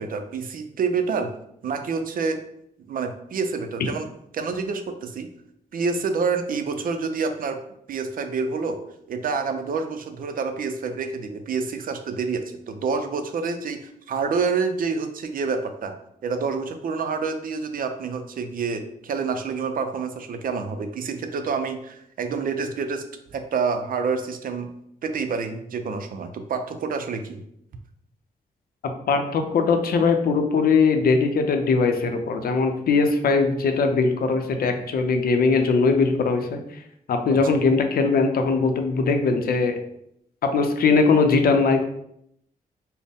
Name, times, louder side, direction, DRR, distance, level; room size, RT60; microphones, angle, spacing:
voice 1, 0.0-1.3 1.6-2.4 2.8-4.1 4.3-5.3 5.7-7.6 7.9-8.8 9.1-15.9 16.2-23.0 23.3-24.7 25.0-27.4 37.3-37.4, right 5 dB, 65° right, 7 dB, 0.5 m, -28 dB
voice 2, 29.1-36.8 37.1-39.8 40.4-41.8, left 4 dB, 80° left, 5 dB, 0.5 m, -20 dB
4.1 x 2.0 x 3.5 m, 0.74 s
cardioid pair, 100°, 15 cm